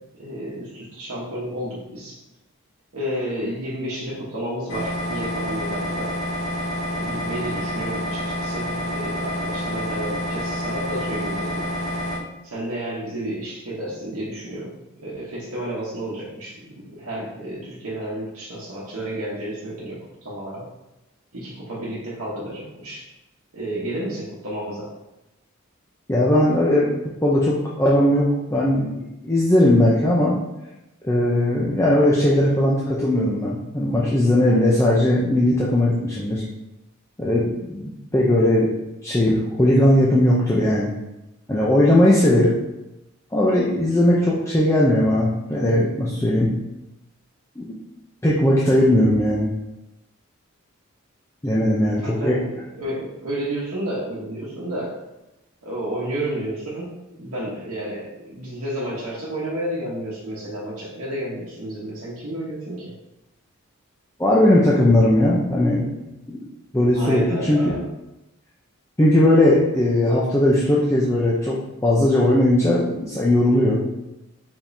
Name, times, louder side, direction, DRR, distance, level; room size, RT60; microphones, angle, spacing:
voice 1, 0.2-2.2 2.9-6.1 6.9-11.7 12.4-14.7 15.0-20.7 21.3-23.1 23.5-25.0 51.8-55.0 55.6-63.0 66.9-67.8, right 1 dB, 85° right, -7 dB, 1.0 m, -31 dB
sound 1, 4.7-12.2, equal, 65° left, 0.7 m, -28 dB
voice 2, 26.1-26.9 27.2-30.4 31.0-36.4 37.2-38.7 39.0-40.9 41.5-42.6 43.3-46.5 47.6-47.7 48.2-49.5 51.4-52.4 64.2-65.9 66.3-66.4 66.7-67.7 69.0-71.6 71.8-73.8, left 1 dB, 15° left, -6 dB, 0.5 m, -18 dB
5.0 x 3.6 x 2.6 m, 0.96 s
head